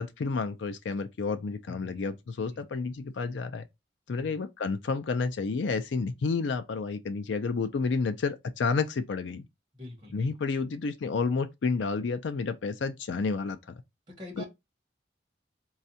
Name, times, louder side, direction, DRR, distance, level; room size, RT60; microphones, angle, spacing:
voice 1, 0.0-3.7 4.1-9.5 10.1-13.6 14.4-14.5, left 4 dB, 80° left, 0.4 m, -30 dB
voice 2, 1.7-2.0 2.4-2.6 4.1-4.3 9.7-10.3 14.1-14.4, left 1 dB, 25° right, 1.2 m, -44 dB
4.1 x 2.3 x 2.7 m
head